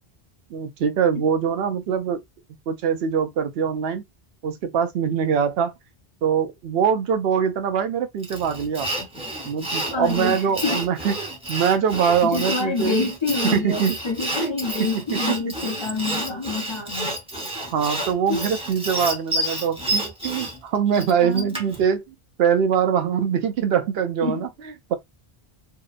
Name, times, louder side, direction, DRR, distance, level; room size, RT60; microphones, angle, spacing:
voice 1, 0.5-2.2 2.7-4.0 4.4-5.7 6.2-8.9 9.5-11.1 11.5-13.1 13.5-14.0 14.4-14.5 15.1-15.5 17.7-24.5 24.9-25.0, right 7 dB, 80° right, 0.8 m, -23 dB
Sawing, 8.2-21.8, right 1 dB, 5° right, 0.6 m, -29 dB
voice 2, 9.9-10.8 12.2-17.2 18.3-18.4 21.2-21.5 24.2-24.5, left 4 dB, 35° left, 0.5 m, -27 dB
2.8 x 2.1 x 2.3 m
omnidirectional pair, 1.0 m